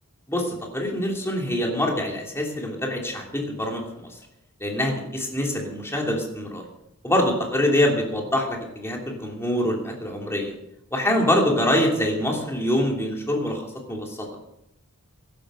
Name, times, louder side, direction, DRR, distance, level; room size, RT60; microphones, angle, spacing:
voice 1, 0.3-4.2 4.6-6.6 7.0-10.5 10.9-13.6 13.9-14.3, left 1 dB, 10° left, 0 dB, 2.9 m, -25 dB
16.5 x 11.5 x 5.5 m, 0.83 s
head